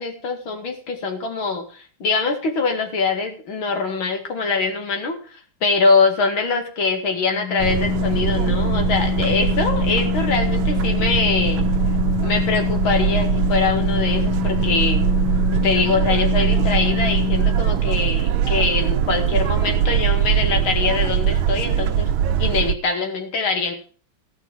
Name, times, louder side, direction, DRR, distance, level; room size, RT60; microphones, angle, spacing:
voice 1, 0.0-11.7 12.2-15.0 15.5-22.1 22.4-23.7, left 4 dB, 70° left, 5 dB, 2.9 m, -23 dB
Organ, 7.3-17.9, left 11 dB, 55° left, 1.8 m, -25 dB
sound 1, 7.6-22.8, right 9 dB, 75° right, 1.4 m, -21 dB
15.0 x 6.2 x 7.3 m, 0.41 s
omnidirectional pair, 2.4 m